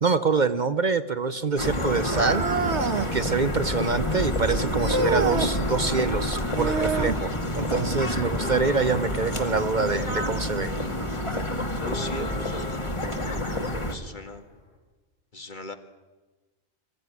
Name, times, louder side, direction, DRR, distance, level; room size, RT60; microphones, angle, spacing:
voice 1, 0.0-2.5 2.8-10.7, right 4 dB, 45° right, 11 dB, 0.9 m, -26 dB
sound 1, 1.5-3.9 4.3-14.8, left 2 dB, 80° left, 4.3 m, -41 dB
sound 2, 1.6-13.9, left 1 dB, 25° left, 2.0 m, -28 dB
sound 3, 2.1-3.2 4.8-5.5 6.6-7.3 9.3-9.4 10.3-10.4 11.3-11.4, right 4 dB, 85° right, 1.6 m, -27 dB
voice 2, 11.8-12.7 13.2-13.5 13.8-14.4 15.3-15.8, left 2 dB, 45° left, 6 dB, 2.0 m, -38 dB
26.0 x 15.5 x 9.6 m, 1.2 s
omnidirectional pair, 1.1 m